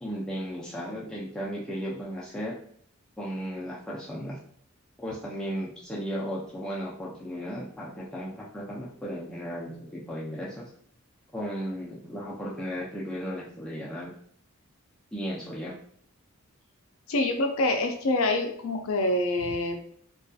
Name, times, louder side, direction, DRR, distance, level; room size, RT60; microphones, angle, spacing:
voice 1, 0.0-2.6 3.2-4.4 5.0-10.7 11.3-14.1 15.1-15.7, equal, 5° left, -5 dB, 0.4 m, -35 dB
voice 2, 17.1-19.9, left 2 dB, 75° left, 4 dB, 0.4 m, -26 dB
2.6 x 2.3 x 2.3 m, 0.63 s
head